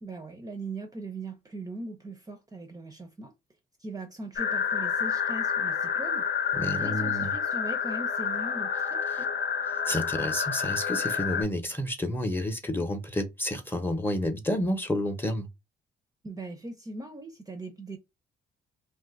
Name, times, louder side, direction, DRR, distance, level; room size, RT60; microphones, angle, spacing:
voice 1, 0.0-3.3 3.8-9.3 16.2-18.0, right 2 dB, 20° right, 0.6 m, -40 dB
sound 1, 4.4-11.4, left 7 dB, 60° left, 0.9 m, -29 dB
voice 2, 6.5-7.3 9.9-15.5, left 1 dB, 10° left, 0.8 m, -30 dB
2.6 x 2.4 x 3.6 m
cardioid pair, 90°, 20 cm